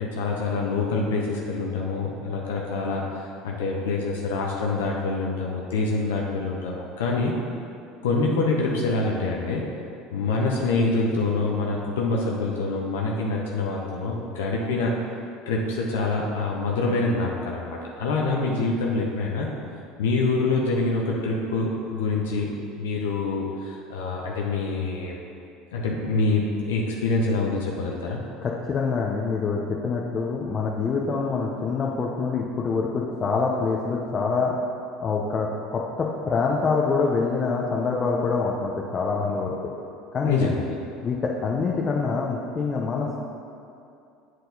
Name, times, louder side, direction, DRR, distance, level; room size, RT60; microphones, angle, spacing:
voice 1, 0.0-7.3 8.0-9.6 10.1-14.9 15.5-19.5 20.0-22.5 22.8-25.1 25.7-28.2 40.3-40.8, left 3 dB, 85° left, -2 dB, 0.7 m, -26 dB
voice 2, 28.4-34.5 35.0-39.5 40.1-40.5 41.0-43.2, left 4 dB, 35° left, -2 dB, 0.7 m, -25 dB
7.9 x 4.6 x 3.9 m, 2.6 s
supercardioid pair, 90°, 0 cm